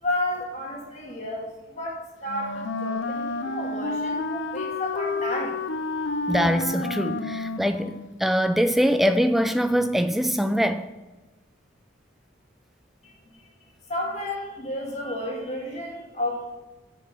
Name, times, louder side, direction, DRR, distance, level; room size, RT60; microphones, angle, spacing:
voice 1, 0.0-5.6 13.0-13.5 13.9-16.6, left 1 dB, 35° left, 1.7 m, -32 dB
Wind instrument woodwind instrument, 2.3-8.2, left 3 dB, 70° left, 0.6 m, -30 dB
voice 2, 6.3-10.9, equal, ahead, 0.3 m, -23 dB
6.3 x 5.3 x 6.8 m
head